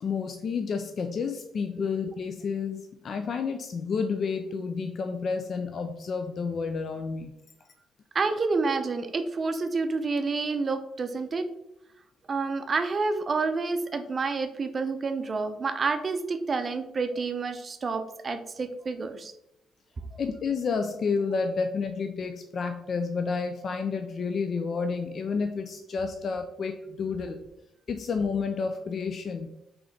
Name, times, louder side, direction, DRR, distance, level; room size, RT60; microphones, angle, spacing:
voice 1, 0.0-7.3 20.2-27.4 27.9-29.5, left 5 dB, 50° left, 6 dB, 0.3 m, -30 dB
voice 2, 8.1-11.5 12.3-19.3, right 4 dB, 40° right, 8 dB, 0.5 m, -29 dB
3.8 x 3.0 x 3.2 m, 0.85 s
cardioid pair, 90°, 0 cm